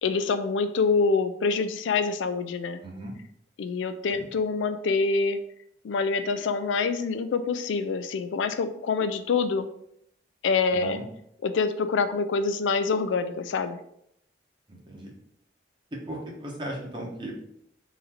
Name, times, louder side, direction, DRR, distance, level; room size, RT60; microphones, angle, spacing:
voice 1, 0.0-2.8 3.6-5.4 5.8-9.7 10.4-11.0 11.4-13.8, left 4 dB, 80° left, 10 dB, 0.4 m, -26 dB
voice 2, 2.8-3.1 4.1-4.3 10.7-11.1 14.7-15.1 15.9-17.3, right 1 dB, 25° right, -2 dB, 0.9 m, -37 dB
3.9 x 2.6 x 4.3 m, 0.73 s
head